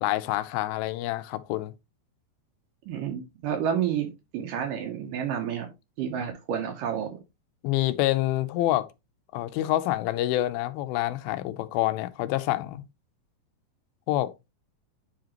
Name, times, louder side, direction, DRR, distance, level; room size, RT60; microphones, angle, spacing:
voice 1, 0.0-1.7 7.6-8.9 9.3-12.8 14.1-14.3, left 15 dB, 90° left, 2.5 m, -27 dB
voice 2, 2.9-5.7 6.0-7.2, right 8 dB, 75° right, 2.4 m, -30 dB
9.7 x 5.0 x 3.0 m
omnidirectional pair, 4.2 m